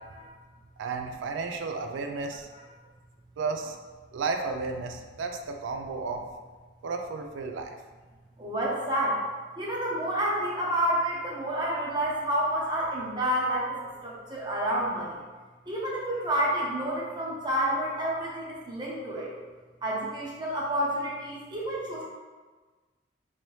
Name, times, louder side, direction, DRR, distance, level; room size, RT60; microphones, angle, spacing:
voice 1, 0.8-2.5 3.4-3.8 4.1-6.2 6.8-7.7, right 4 dB, 90° right, 4 dB, 0.4 m, -33 dB
voice 2, 8.4-9.2 9.6-15.2 15.7-19.3 19.8-22.0, right 1 dB, 25° right, -5 dB, 0.7 m, -29 dB
3.1 x 2.7 x 3.1 m, 1.4 s
head